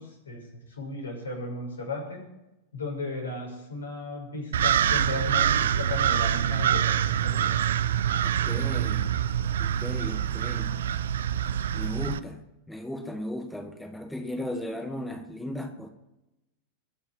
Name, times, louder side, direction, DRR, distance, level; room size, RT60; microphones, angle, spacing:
voice 1, 0.0-2.2 2.7-7.6, left 2 dB, 70° left, 1 dB, 6.0 m, -35 dB
sound 1, 4.5-12.2, right 9 dB, 60° right, 0.6 m, -25 dB
voice 2, 8.2-9.1 9.6-10.8 11.7-12.4 12.7-15.9, left 1 dB, 5° left, 5 dB, 1.4 m, -36 dB
21.5 x 7.2 x 7.5 m, 0.93 s
figure-of-eight pair, 90°, 0 cm